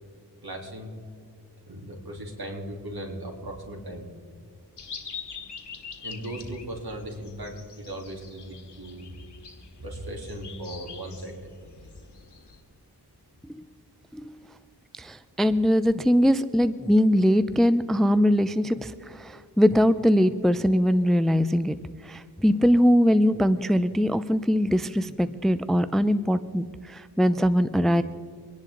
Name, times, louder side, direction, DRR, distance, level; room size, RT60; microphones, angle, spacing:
voice 1, 0.4-0.9 1.7-4.4 6.0-9.1 9.8-11.7, right 1 dB, 65° right, 0 dB, 3.4 m, -38 dB
sound 1, 4.8-12.6, left 6 dB, 90° left, 1.7 m, -44 dB
voice 2, 15.0-21.7 22.0-28.0, equal, ahead, 13 dB, 0.5 m, -22 dB
25.0 x 10.5 x 3.9 m, 2.3 s
wide cardioid pair, 55°, 40 cm